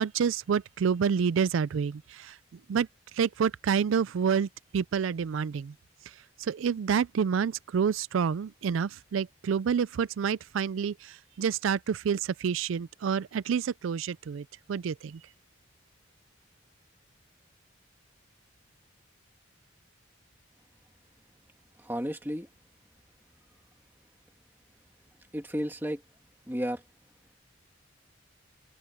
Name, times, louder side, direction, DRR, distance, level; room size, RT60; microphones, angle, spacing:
voice 1, 0.0-2.4 2.7-2.9 3.1-5.7 6.1-15.2, right 7 dB, 80° right, 0.4 m, -28 dB
voice 2, 21.8-22.5 25.3-26.0 26.5-26.8, equal, 10° right, 2.3 m, -32 dB
open air
head